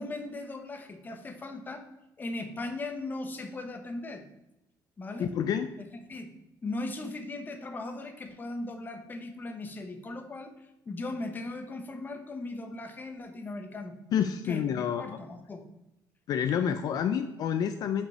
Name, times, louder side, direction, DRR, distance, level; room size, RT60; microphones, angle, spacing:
voice 1, 0.0-1.8 2.2-4.2 5.0-5.3 6.1-6.3 6.6-13.9 14.4-14.6 15.0-15.6, left 2 dB, 25° left, 5 dB, 1.0 m, -38 dB
voice 2, 5.2-5.7 14.1-15.2 16.3-18.1, left 8 dB, 60° left, 8 dB, 0.4 m, -28 dB
5.3 x 5.2 x 5.6 m, 0.91 s
cardioid pair, 130°, 7 cm